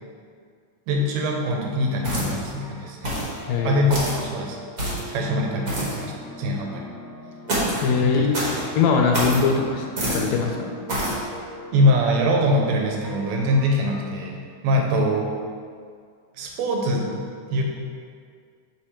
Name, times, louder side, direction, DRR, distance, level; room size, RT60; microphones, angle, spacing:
voice 1, 0.9-3.0 3.6-4.6 5.1-6.1 6.4-6.9 8.0-8.3 11.7-15.3 16.4-17.1 17.5-17.6, equal, 75° right, 0 dB, 1.9 m, -23 dB
sound 1, 2.0-2.5 3.0-3.3 3.9-4.2 4.8-5.1 5.6-6.0 7.5-7.8 8.3-8.6 9.1-9.4 10.0-10.3 10.9-11.2, right 1 dB, 45° right, 1.1 m, -26 dB
sound 2, 2.2-14.0, left 1 dB, 50° left, 0.9 m, -42 dB
voice 2, 3.5-3.8 7.8-8.3 8.8-10.7, left 5 dB, 80° left, 2 dB, 1.6 m, -21 dB
7.0 x 3.3 x 4.3 m, 2.1 s
omnidirectional pair, 3.5 m